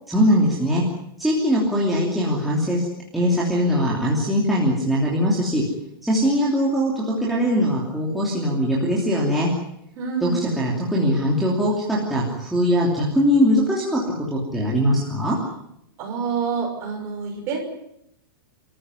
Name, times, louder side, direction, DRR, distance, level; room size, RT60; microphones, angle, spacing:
voice 1, 0.1-0.8 1.2-2.9 3.1-5.6 6.0-9.5 10.2-14.0 14.3-15.4, equal, ahead, -6 dB, 3.0 m, -21 dB
voice 2, 10.0-10.5 16.0-17.6, right 6 dB, 25° right, 1 dB, 6.0 m, -27 dB
29.5 x 14.5 x 9.7 m, 0.78 s
supercardioid pair, 180°, 12 cm